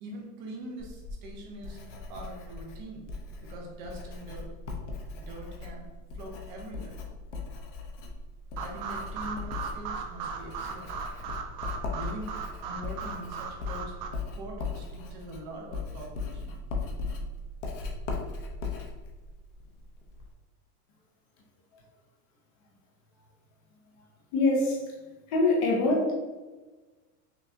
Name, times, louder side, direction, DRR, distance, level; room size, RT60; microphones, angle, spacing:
voice 1, 0.0-1.8 2.1-3.1 3.4-4.5 5.2-5.8 6.1-6.9 8.6-10.9 11.9-12.4 12.6-14.0 14.3-16.6, right 1 dB, 30° right, 0 dB, 0.5 m, -43 dB
Writing, 0.8-20.3, left 3 dB, 50° left, 0.7 m, -39 dB
sound 1, 8.6-14.1, right 5 dB, 85° right, 0.8 m, -38 dB
voice 2, 24.3-24.8 25.3-26.1, left 2 dB, 20° left, -2 dB, 0.4 m, -24 dB
5.7 x 2.7 x 2.4 m, 1.2 s
supercardioid pair, 175°, 47 cm